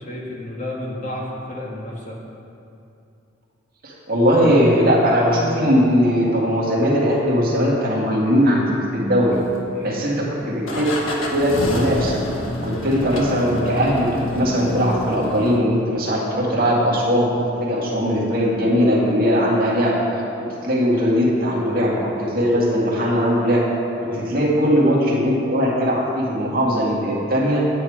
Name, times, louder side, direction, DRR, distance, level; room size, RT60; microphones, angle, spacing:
voice 1, 0.0-2.2 9.7-10.0 12.9-13.0 24.1-24.3, left 1 dB, 40° left, -3 dB, 1.7 m, -32 dB
voice 2, 3.8-8.6 8.9-9.4 9.8-12.2 12.6-14.1 14.3-17.3 17.6-19.9 20.4-23.7 24.0-27.7, equal, 50° right, -4 dB, 2.1 m, -19 dB
sound 1, 9.3-10.0 10.7-15.6, left 1 dB, 85° left, 1.3 m, -28 dB
9.6 x 9.1 x 4.9 m, 2.6 s
head